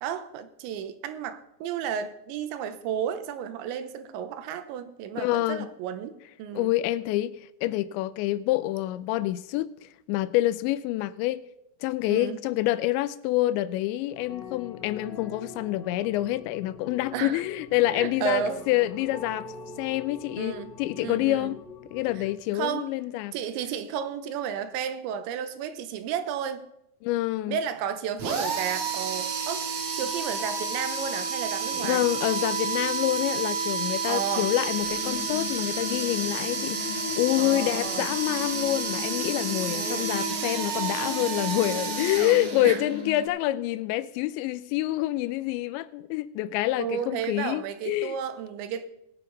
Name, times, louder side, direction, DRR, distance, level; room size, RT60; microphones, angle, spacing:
voice 1, 0.0-6.7 12.1-12.4 17.1-17.4 17.9-18.6 20.4-21.6 22.5-22.9 23.3-26.7 27.5-32.1 34.1-34.5 37.4-38.1 39.7-40.1 42.6-42.8 43.5-43.6 46.8-48.9, right 8 dB, 85° right, 3.1 m, -33 dB
voice 2, 5.2-5.7 6.5-11.5 11.8-19.5 19.8-21.6 21.9-23.3 27.0-27.6 31.7-48.2, left 15 dB, 85° left, 2.8 m, -27 dB
sound 1, 14.1-22.4, left 3 dB, 15° left, 2.3 m, -44 dB
sound 2, 28.2-43.1, right 5 dB, 60° right, 1.6 m, -30 dB
sound 3, 34.8-43.3, left 7 dB, 55° left, 2.9 m, -38 dB
20.5 x 8.5 x 4.0 m
omnidirectional pair, 5.3 m